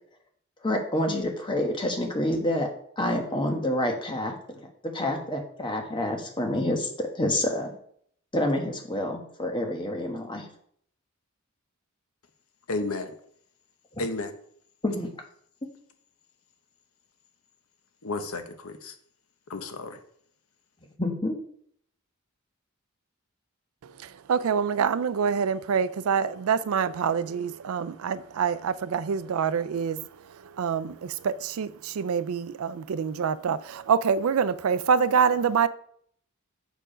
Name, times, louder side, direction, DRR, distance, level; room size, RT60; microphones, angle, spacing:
voice 1, 0.6-2.7 3.0-4.7 4.9-6.9 7.1-7.8 8.3-10.5 14.8-15.1 21.0-21.3, left 1 dB, 25° left, 1.2 m, -28 dB
voice 2, 12.7-13.1 14.0-14.3 18.0-18.9 19.5-20.0, left 2 dB, 80° left, 0.9 m, -32 dB
voice 3, 24.3-30.0 30.6-30.9 31.6-31.7 32.0-33.6 33.9-35.7, right 6 dB, 75° right, 0.4 m, -25 dB
7.1 x 4.6 x 5.0 m
head